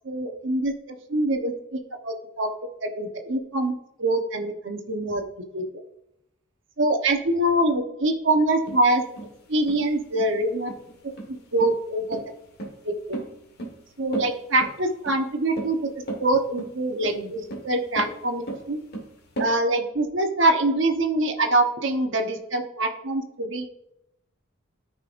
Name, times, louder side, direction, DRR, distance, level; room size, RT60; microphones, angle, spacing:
voice 1, 0.0-2.5 2.8-5.2 5.5-5.8 6.8-9.0 9.5-10.7 11.5-12.2 12.8-13.2 14.0-18.8 19.4-23.7, right 2 dB, 60° right, 4 dB, 1.1 m, -24 dB
sound 1, 8.7-19.5, right 2 dB, 50° left, 1.7 m, -36 dB
13.5 x 5.5 x 2.6 m, 0.82 s
head